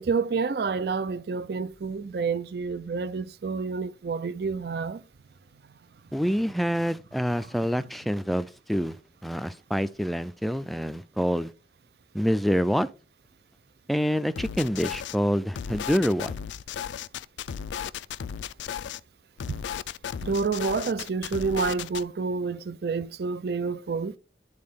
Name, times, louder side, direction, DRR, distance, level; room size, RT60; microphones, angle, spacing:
voice 1, 0.0-5.0 19.5-19.6 20.2-24.1, right 4 dB, 60° right, 0.4 m, -29 dB
voice 2, 6.1-9.0 9.2-11.5 12.1-12.9 13.9-16.3, equal, ahead, 0.3 m, -26 dB
sound 1, 14.4-15.2 15.5-19.0 19.4-22.0, left 8 dB, 85° left, 0.4 m, -35 dB
10.5 x 4.2 x 3.6 m
head